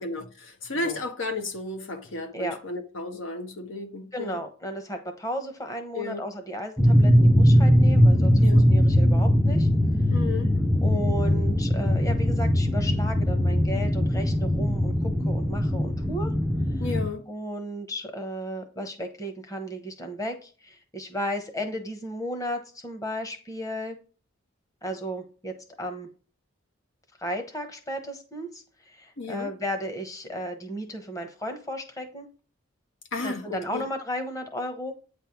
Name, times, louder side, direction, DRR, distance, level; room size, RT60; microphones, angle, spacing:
voice 1, 0.0-4.4 5.9-6.2 8.4-8.7 10.1-10.6 16.8-17.2 29.2-29.5 33.1-33.8, left 3 dB, 70° left, 1.3 m, -33 dB
voice 2, 4.1-9.7 10.8-16.3 16.7-16.8 17.3-23.9 24.8-26.1 27.2-32.3 33.2-34.9, equal, 15° left, 1.0 m, -34 dB
sound 1, 6.8-17.1, equal, ahead, 0.5 m, -20 dB
8.9 x 3.4 x 5.9 m
head